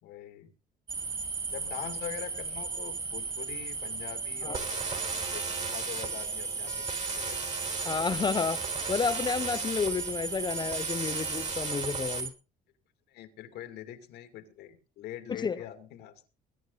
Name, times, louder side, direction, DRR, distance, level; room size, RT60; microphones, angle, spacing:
voice 1, 0.0-0.5 1.4-7.5 13.1-16.2, left 11 dB, 80° left, 2.4 m, -44 dB
sound 1, 0.9-12.3, right 4 dB, 25° right, 2.9 m, -36 dB
sound 2, 4.5-12.2, right 4 dB, 45° right, 4.3 m, -37 dB
voice 2, 7.8-8.6 8.9-12.3 15.3-15.6, left 5 dB, 25° left, 0.6 m, -31 dB
21.0 x 9.7 x 3.9 m
cardioid pair, 110°, 17 cm